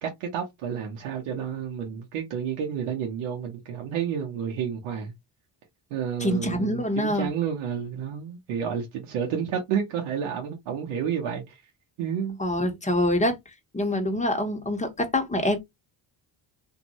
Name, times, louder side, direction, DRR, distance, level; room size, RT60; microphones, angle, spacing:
voice 1, 0.0-5.1 5.9-11.6 12.0-12.4, right 8 dB, 80° right, 0.9 m, -30 dB
voice 2, 6.2-7.3 12.4-13.4 13.7-15.6, left 1 dB, 15° left, 1.1 m, -25 dB
2.6 x 2.6 x 3.0 m
supercardioid pair, 65°, 50 cm